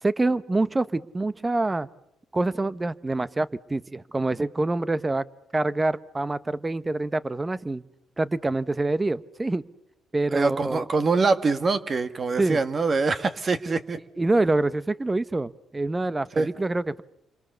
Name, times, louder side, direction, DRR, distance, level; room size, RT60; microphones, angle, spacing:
voice 1, 0.0-1.9 2.3-5.2 5.5-7.8 8.2-9.6 10.1-10.8 12.4-12.6 14.2-17.0, right 2 dB, 20° right, 16 dB, 1.1 m, -26 dB
voice 2, 10.3-14.0 16.3-16.5, right 4 dB, 40° right, 10 dB, 1.9 m, -24 dB
28.5 x 25.5 x 6.9 m, 0.80 s
cardioid pair, 90°, 0 cm